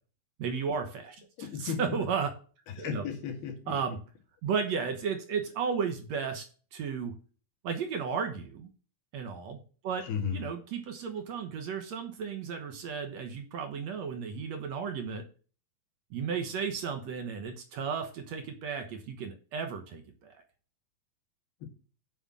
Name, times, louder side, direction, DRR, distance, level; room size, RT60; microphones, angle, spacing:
voice 1, 0.4-2.3 2.8-3.0 3.7-4.0 4.4-6.4 6.7-7.1 7.6-8.7 9.1-9.6 9.8-10.0 10.3-15.2 16.1-20.3, right 6 dB, 65° right, 1.8 m, -34 dB
voice 2, 1.4-2.0 2.8-3.7 10.0-10.5 21.6-21.7, left 7 dB, 80° left, 4.0 m, -35 dB
8.0 x 5.8 x 7.4 m
omnidirectional pair, 4.4 m